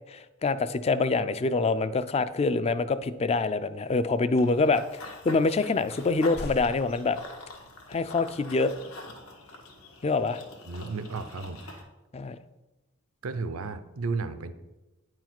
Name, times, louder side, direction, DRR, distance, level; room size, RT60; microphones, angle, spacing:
voice 1, 0.1-7.2 7.9-8.7 10.0-10.4 12.1-12.4, left 3 dB, 30° left, 13 dB, 0.4 m, -25 dB
sound 1, 2.9-3.5 4.4-5.1 5.4-5.5 5.8-7.8, left 1 dB, 50° left, 0.7 m, -44 dB
Run / Bird vocalization bird call bird song, 4.4-11.8, left 2 dB, 85° left, 1.5 m, -45 dB
voice 2, 10.7-11.8 13.2-14.5, right 4 dB, 85° right, 11 dB, 0.7 m, -33 dB
9.5 x 4.7 x 5.9 m, 1.1 s
head